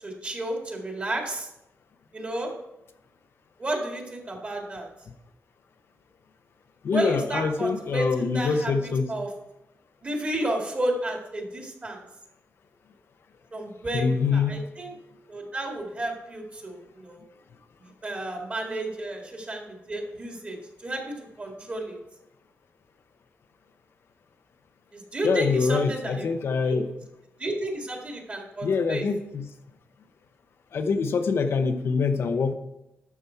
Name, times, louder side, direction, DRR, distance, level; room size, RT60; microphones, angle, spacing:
voice 1, 0.0-1.5 2.1-2.5 3.6-4.9 6.9-9.3 10.0-12.0 13.5-14.9 15.3-17.2 17.8-22.0 24.9-26.3 26.6-26.8 27.4-29.1, right 1 dB, 30° right, 1 dB, 2.1 m, -32 dB
voice 2, 6.8-9.1 13.9-14.6 25.2-26.9 28.6-29.5 30.7-32.5, left 5 dB, 60° left, 7 dB, 0.8 m, -25 dB
12.0 x 7.0 x 4.6 m, 0.90 s
wide cardioid pair, 155°, 5 cm